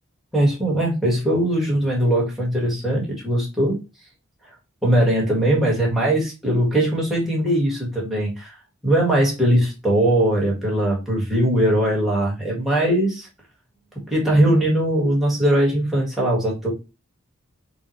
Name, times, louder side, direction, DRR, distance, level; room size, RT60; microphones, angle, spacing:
voice 1, 0.3-3.8 4.8-8.5 8.8-13.3 13.9-16.7, right 1 dB, ahead, -2 dB, 1.8 m, -20 dB
5.5 x 2.7 x 3.1 m, 0.28 s
head